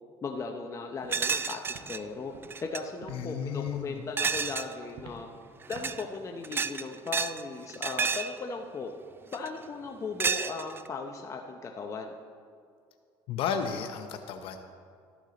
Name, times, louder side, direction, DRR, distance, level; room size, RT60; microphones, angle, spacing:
voice 1, 0.0-1.6 1.9-2.3 2.6-5.3 5.7-8.9 9.3-12.2, left 4 dB, 30° left, 3 dB, 0.7 m, -37 dB
Walk footsteps, 1.0-1.2 1.7-1.9 2.3-2.5 3.0-3.2 3.6-3.9 4.3-4.5 4.9-5.2 5.7-5.9, right 6 dB, 55° right, 1.1 m, -47 dB
sound 1, 1.1-2.0 2.4-2.8 4.2-4.7 5.6-6.0 6.4-7.4 7.7-8.4 9.3-9.6 10.2-10.9, right 5 dB, 20° right, 0.3 m, -30 dB
voice 2, 3.1-4.0 13.3-14.6, left 7 dB, 65° left, 6 dB, 0.7 m, -33 dB
13.0 x 6.0 x 3.9 m, 2.2 s
supercardioid pair, 100°, 10 cm